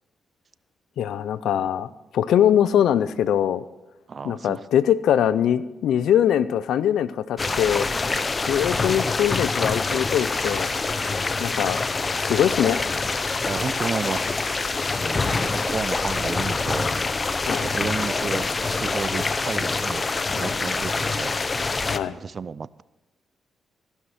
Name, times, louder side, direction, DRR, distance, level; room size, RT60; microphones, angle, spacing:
voice 1, 1.0-1.9 2.1-3.6 4.2-7.9 8.5-10.7 11.4-11.8 12.2-12.8 17.5-17.7 20.3-20.7 21.9-22.1, left 10 dB, 80° left, 16 dB, 0.5 m, -22 dB
voice 2, 4.1-4.6 7.9-8.3 11.0-11.2 13.4-14.5 15.0-16.9 17.6-21.8 22.1-22.8, right 5 dB, 50° right, 19 dB, 0.4 m, -33 dB
sound 1, 7.4-22.0, left 3 dB, 35° left, 0.6 m, -25 dB
15.0 x 5.8 x 7.9 m, 1.1 s
supercardioid pair, 60°, 0 cm